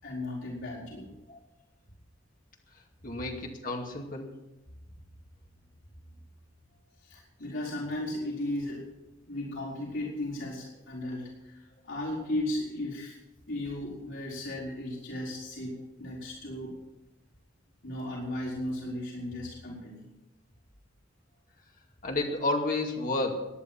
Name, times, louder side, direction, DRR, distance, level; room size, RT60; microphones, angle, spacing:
voice 1, 0.0-1.1 7.0-8.8 9.3-13.1 13.5-16.7 17.8-20.0, left 1 dB, 80° left, -5 dB, 4.4 m, -35 dB
voice 2, 3.0-4.3 22.0-23.4, left 2 dB, 45° left, 1 dB, 2.4 m, -31 dB
18.0 x 10.5 x 5.8 m, 0.97 s
head